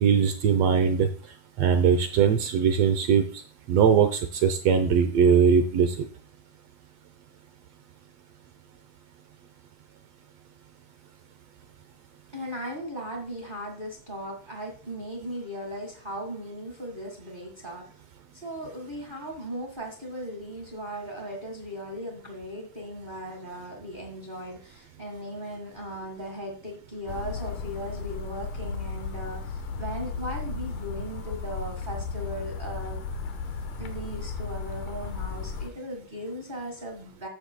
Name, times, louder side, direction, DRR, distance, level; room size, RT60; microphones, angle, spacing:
voice 1, 0.0-1.1 1.6-3.4 3.7-6.0, right 7 dB, 70° right, 8 dB, 1.6 m, -21 dB
voice 2, 12.3-17.9 18.3-33.0 33.8-37.3, equal, 30° right, 2 dB, 0.9 m, -37 dB
sound 1, 27.1-35.7, left 4 dB, 80° left, 2.5 m, -35 dB
12.5 x 9.3 x 2.2 m, 0.39 s
omnidirectional pair, 3.6 m